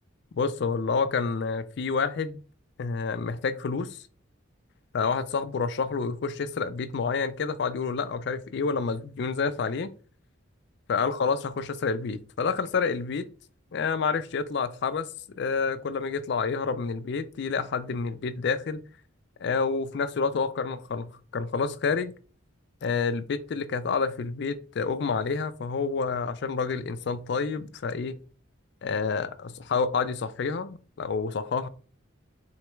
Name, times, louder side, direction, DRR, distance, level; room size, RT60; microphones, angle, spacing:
voice 1, 0.3-2.4 2.8-4.0 4.9-9.9 10.9-13.3 13.7-15.1 15.4-18.8 19.4-22.1 22.8-28.2 28.8-31.7, left 5 dB, 55° left, 0.4 m, -28 dB
3.9 x 3.3 x 3.1 m
head